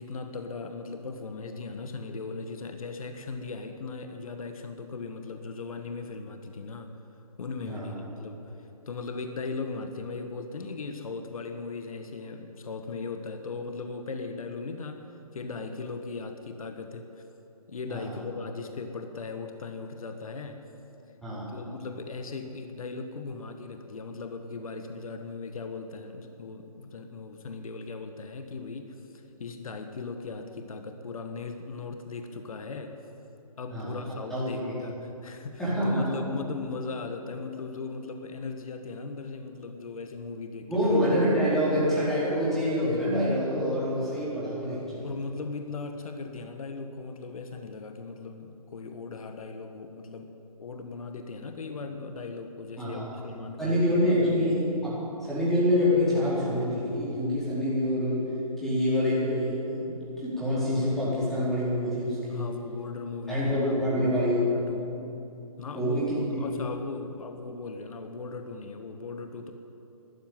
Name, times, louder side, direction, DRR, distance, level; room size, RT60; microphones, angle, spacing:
voice 1, 0.0-6.9 7.4-8.5 8.9-15.1 15.3-17.1 17.7-20.6 21.5-33.0 33.6-41.0 45.0-54.4 62.3-63.8 64.3-64.9 65.6-69.5, left 4 dB, 65° left, 6 dB, 1.4 m, -38 dB
voice 2, 21.2-21.6 33.7-34.0 34.3-34.7 35.6-36.2 40.7-45.1 52.8-53.1 53.6-62.5 63.3-64.5 65.7-66.4, equal, ahead, -10 dB, 4.6 m, -26 dB
13.0 x 11.5 x 9.2 m, 2.9 s
figure-of-eight pair, 150°, 20 cm